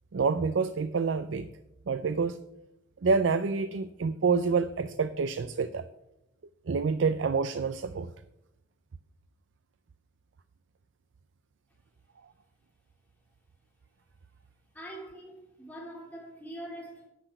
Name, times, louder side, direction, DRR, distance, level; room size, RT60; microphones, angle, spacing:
voice 1, 0.1-1.5 1.9-2.4 3.0-5.9 6.7-8.1, right 5 dB, 85° right, 12 dB, 0.5 m, -27 dB
voice 2, 14.7-17.1, right 1 dB, 10° left, -2 dB, 2.9 m, -43 dB
10.5 x 6.0 x 7.8 m, 0.87 s
head